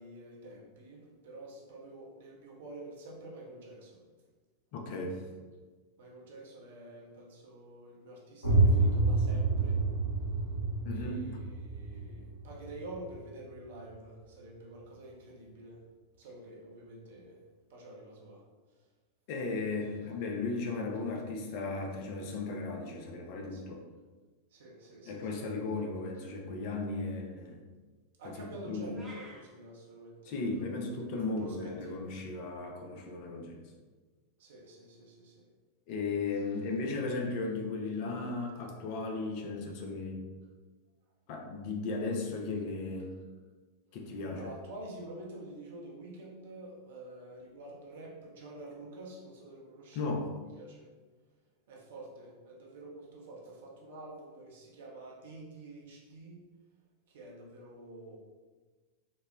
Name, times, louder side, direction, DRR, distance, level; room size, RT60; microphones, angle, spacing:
voice 1, 0.0-4.0 6.0-9.8 10.9-15.8 16.2-17.4 17.7-18.4 23.5-23.7 24.5-25.6 28.2-32.1 34.4-35.4 44.3-50.1 50.6-50.9 51.7-56.4 57.1-58.2, right 1 dB, 60° right, -3 dB, 0.7 m, -48 dB
voice 2, 4.7-5.2 10.8-11.2 19.3-23.8 25.1-27.6 28.2-29.0 30.2-33.6 35.9-40.2 41.3-43.1 43.9-44.5 49.9-50.3, left 3 dB, 45° left, 2 dB, 0.5 m, -36 dB
sound 1, 8.4-14.0, right 2 dB, 75° left, 0.8 m, -29 dB
sound 2, 28.9-29.4, right 1 dB, ahead, 0.8 m, -50 dB
4.0 x 2.1 x 2.2 m, 1.3 s
figure-of-eight pair, 90°, 0 cm